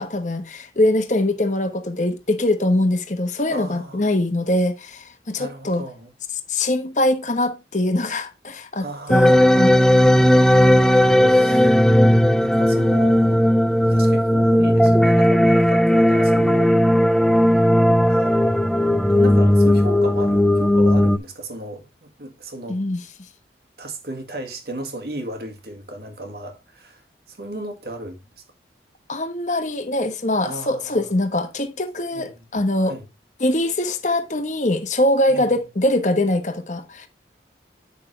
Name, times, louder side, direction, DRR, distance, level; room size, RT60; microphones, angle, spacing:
voice 1, 0.0-5.8 6.5-9.7 11.5-11.7 22.7-23.0 29.1-32.9 33.4-37.1, left 1 dB, 45° left, 1.2 m, -22 dB
voice 2, 3.5-4.1 5.4-6.1 8.8-16.8 18.0-18.4 19.1-22.8 23.8-28.4 30.4-31.1 32.1-32.5 32.8-33.1 35.3-35.5, right 1 dB, 60° right, 1.9 m, -35 dB
sound 1, 9.1-21.2, left 1 dB, 5° left, 0.4 m, -16 dB
8.4 x 6.3 x 3.3 m
head